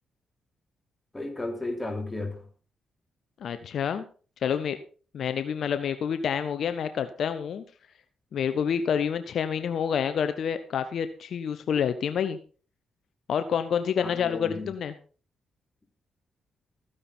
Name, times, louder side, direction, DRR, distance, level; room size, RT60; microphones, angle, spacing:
voice 1, 1.1-2.5 14.0-14.7, left 2 dB, 20° left, 6 dB, 3.1 m, -34 dB
voice 2, 3.4-4.0 4.4-4.8 5.1-7.6 8.3-12.4 13.3-14.9, left 7 dB, 70° left, 11 dB, 0.9 m, -28 dB
14.5 x 9.9 x 4.4 m, 0.39 s
supercardioid pair, 55°, 0 cm